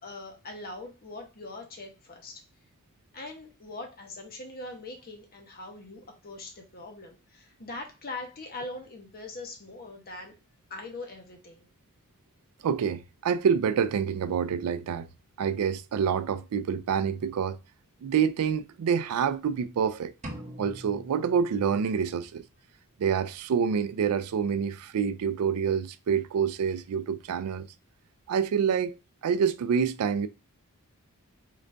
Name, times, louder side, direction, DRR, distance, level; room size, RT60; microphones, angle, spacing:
voice 1, 0.0-2.4 3.1-10.3 10.7-11.7, left 2 dB, 45° left, 1.0 m, -42 dB
voice 2, 12.6-15.1 15.4-17.6 18.0-20.1 20.6-22.4 23.0-27.7 28.3-29.0 29.2-30.3, right 7 dB, 80° right, 0.4 m, -27 dB
sound 1, 20.2-22.2, equal, 35° right, 0.8 m, -43 dB
3.9 x 2.5 x 3.3 m
head